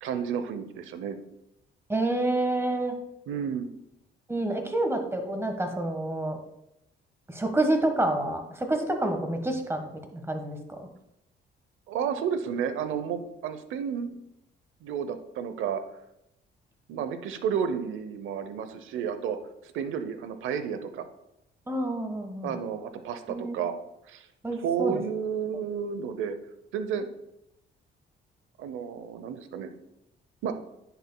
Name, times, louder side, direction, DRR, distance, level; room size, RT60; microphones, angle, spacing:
voice 1, 0.0-1.2 3.3-3.7 11.9-14.2 14.8-15.8 16.9-19.4 19.6-21.0 22.4-23.7 24.1-24.3 24.6-26.4 26.7-27.1 28.6-29.7 30.4-30.5, right 7 dB, 85° right, 10 dB, 0.7 m, -31 dB
voice 2, 1.9-2.9 4.3-6.4 7.3-10.8 21.7-22.5 23.3-23.6 24.4-25.0, right 1 dB, 10° right, 5 dB, 1.3 m, -28 dB
10.0 x 6.9 x 2.2 m, 0.85 s
cardioid pair, 90°, 20 cm